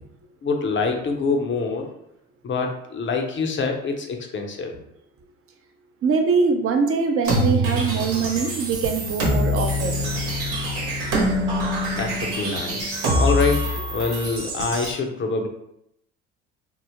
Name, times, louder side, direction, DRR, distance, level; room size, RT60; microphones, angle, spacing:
voice 1, 0.4-1.9 2.4-4.7 12.0-15.5, left 4 dB, 35° left, 3 dB, 0.7 m, -25 dB
voice 2, 6.0-10.1 10.9-11.0, right 5 dB, 40° right, 4 dB, 0.7 m, -23 dB
sound 1, 7.2-14.9, equal, 75° right, 1.1 m, -24 dB
3.5 x 2.0 x 2.9 m, 0.79 s
hypercardioid pair, 65°, 35 cm